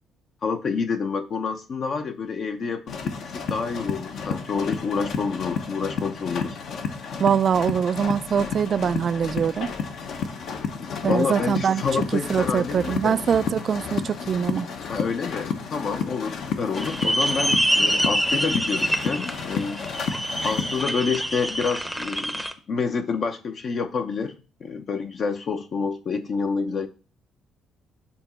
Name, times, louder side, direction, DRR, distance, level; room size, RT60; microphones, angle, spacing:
voice 1, 0.4-6.6 10.8-13.2 14.9-19.8 20.4-24.3 24.6-26.9, left 5 dB, 50° left, 0.7 m, -28 dB
sound 1, 2.9-20.8, left 6 dB, 65° left, 1.0 m, -32 dB
voice 2, 7.2-9.7 11.0-11.8 12.1-14.7, right 7 dB, 50° right, 0.3 m, -23 dB
sound 2, 16.7-22.5, equal, ahead, 0.7 m, -26 dB
7.0 x 2.9 x 5.5 m
cardioid pair, 100°, 0 cm